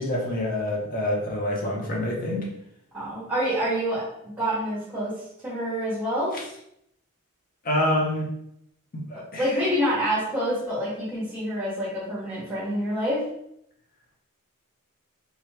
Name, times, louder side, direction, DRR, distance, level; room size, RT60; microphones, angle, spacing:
voice 1, 0.0-2.4 7.6-8.3 8.9-9.5, left 1 dB, 40° left, -2 dB, 0.9 m, -26 dB
voice 2, 2.9-6.3 9.4-13.2, equal, 5° right, -9 dB, 1.3 m, -27 dB
3.6 x 3.0 x 3.3 m, 0.76 s
head